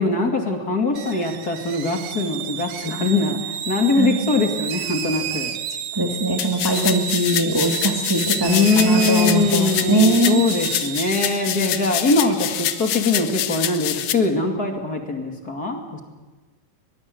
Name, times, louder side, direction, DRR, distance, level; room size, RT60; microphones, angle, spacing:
voice 1, 0.0-5.6 8.4-16.0, left 3 dB, 30° left, 2 dB, 2.5 m, -22 dB
sound 1, 1.0-13.2, right 9 dB, 65° right, 2.3 m, -31 dB
voice 2, 4.0-4.3 5.9-10.4 11.5-11.9, right 1 dB, 10° right, 2 dB, 1.2 m, -21 dB
sound 2, 6.4-14.1, left 12 dB, 80° left, 2.5 m, -26 dB
22.5 x 21.5 x 7.9 m, 1.2 s
omnidirectional pair, 3.8 m